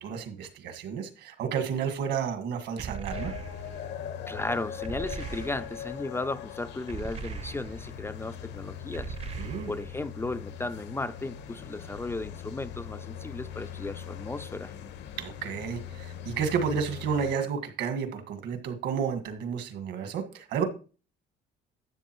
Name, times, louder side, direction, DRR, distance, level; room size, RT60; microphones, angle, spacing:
voice 1, 0.0-3.3 9.4-9.7 15.2-20.6, right 7 dB, 75° right, 1.7 m, -31 dB
sound 1, 2.8-3.9 4.8-5.9 6.9-8.0 8.9-10.0, right 6 dB, 35° right, 0.6 m, -39 dB
sound 2, 3.1-17.4, left 9 dB, 75° left, 1.1 m, -41 dB
voice 2, 4.3-9.2 9.7-14.7, left 2 dB, 15° left, 0.3 m, -35 dB
12.5 x 7.3 x 3.0 m
cardioid pair, 120°, 18 cm